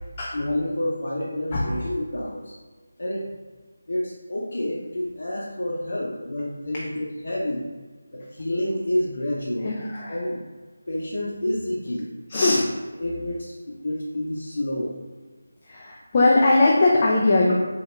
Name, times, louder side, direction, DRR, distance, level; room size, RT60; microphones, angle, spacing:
voice 1, 0.3-2.5 3.0-3.3 3.9-7.6 8.1-9.7 10.1-10.4 10.9-12.0 13.0-15.0, left 1 dB, 65° left, -4 dB, 0.7 m, -28 dB
voice 2, 9.6-10.2 12.3-12.6 15.7-17.5, left 2 dB, 20° left, -4 dB, 0.4 m, -20 dB
4.7 x 2.3 x 3.2 m, 1.4 s
figure-of-eight pair, 175°, 0 cm